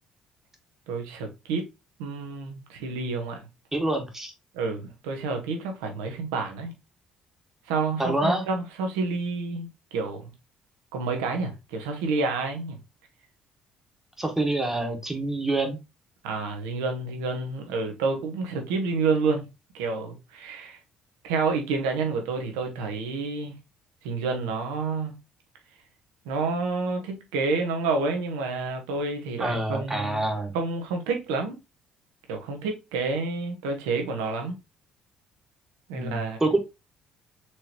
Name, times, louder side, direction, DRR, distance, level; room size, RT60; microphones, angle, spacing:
voice 1, 0.9-1.7 2.0-3.5 4.5-6.7 7.7-10.3 10.9-12.8 16.2-19.5 19.7-20.8 21.2-23.5 24.0-25.2 26.2-31.6 32.3-34.6 35.9-36.4, right 4 dB, 90° right, 0.9 m, -29 dB
voice 2, 3.7-4.3 8.0-8.4 14.2-15.8 29.4-30.5 35.9-36.6, right 2 dB, 15° right, 1.2 m, -26 dB
4.4 x 3.2 x 2.8 m
supercardioid pair, 65°, 3 cm